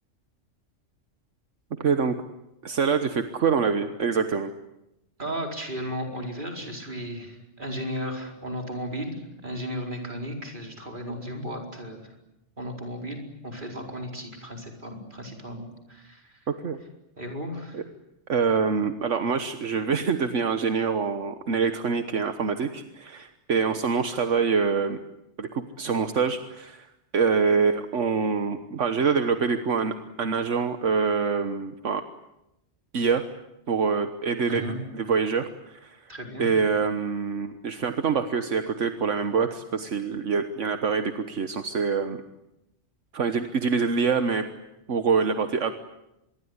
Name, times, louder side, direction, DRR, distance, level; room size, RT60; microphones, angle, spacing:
voice 1, 1.8-2.2 2.6-4.5 16.6-16.8 17.7-17.8 18.3-25.0 25.4-26.9 27.1-32.0 32.9-33.2 33.7-36.1 36.4-42.2 43.1-44.4 44.9-45.7, right 5 dB, 75° right, 8 dB, 1.5 m, -25 dB
voice 2, 5.2-12.1 12.6-16.4 17.2-17.8 34.5-34.8 36.1-36.5, equal, 40° right, 2 dB, 4.9 m, -35 dB
25.5 x 22.5 x 9.7 m, 0.90 s
omnidirectional pair, 1.3 m